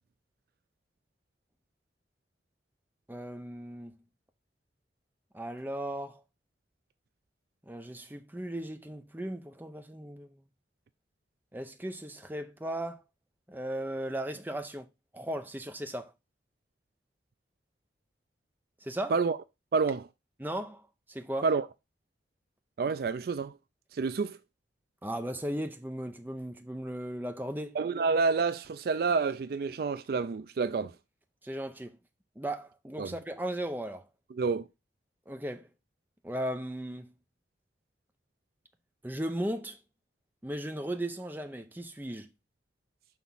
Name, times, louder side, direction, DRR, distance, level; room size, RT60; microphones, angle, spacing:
voice 1, 3.1-4.0 5.3-6.2 7.7-10.4 11.5-13.0 13.5-14.9 15.1-16.1 18.8-19.2 20.4-20.8 21.1-21.5 25.0-27.8 31.4-32.0 32.4-34.0 35.3-35.7 36.2-37.1 39.0-39.8 40.4-42.3, right 1 dB, 10° right, 0.7 m, -36 dB
voice 2, 19.7-20.1 21.4-21.7 22.8-23.5 23.9-24.4 27.8-30.9 33.0-33.1 34.3-34.7, right 4 dB, 55° right, 0.3 m, -28 dB
6.0 x 3.6 x 5.5 m
head